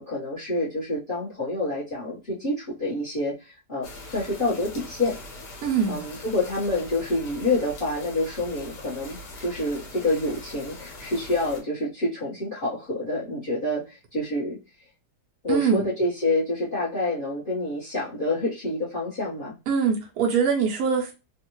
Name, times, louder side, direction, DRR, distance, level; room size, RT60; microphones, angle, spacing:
voice 1, 0.0-5.2 5.9-14.6 15.4-19.5, left 2 dB, 35° left, -7 dB, 1.3 m, -27 dB
sound 1, 3.8-11.6, left 2 dB, 85° left, 1.7 m, -42 dB
voice 2, 5.6-6.0 15.5-15.9 19.7-21.1, right 6 dB, 70° right, 0 dB, 1.2 m, -23 dB
3.5 x 2.4 x 3.0 m, 0.29 s
omnidirectional pair, 1.7 m